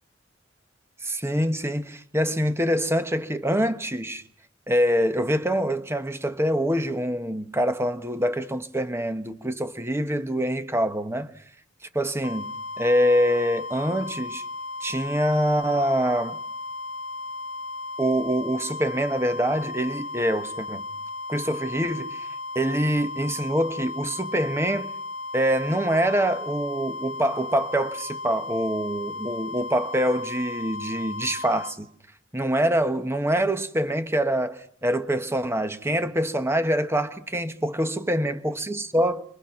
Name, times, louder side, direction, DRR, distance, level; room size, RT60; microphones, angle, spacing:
voice 1, 1.0-4.2 4.7-11.3 11.9-14.4 14.8-16.4 18.0-20.8 21.3-22.3 22.5-24.9 25.3-31.9 32.3-39.2, equal, 15° right, 1.3 m, -25 dB
sound 1, 12.2-31.8, left 2 dB, 70° left, 0.9 m, -35 dB
29.5 x 24.0 x 6.0 m
head